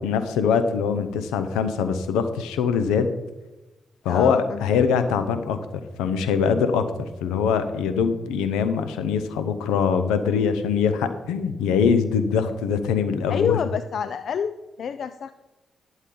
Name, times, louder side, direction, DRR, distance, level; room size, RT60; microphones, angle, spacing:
voice 1, 0.0-3.1 4.0-5.6 6.0-13.6, left 6 dB, 85° left, 10 dB, 0.8 m, -23 dB
voice 2, 4.1-4.8 13.3-15.3, left 7 dB, 65° left, 12 dB, 0.4 m, -27 dB
12.0 x 7.3 x 3.9 m, 1.0 s
supercardioid pair, 50°, 0 cm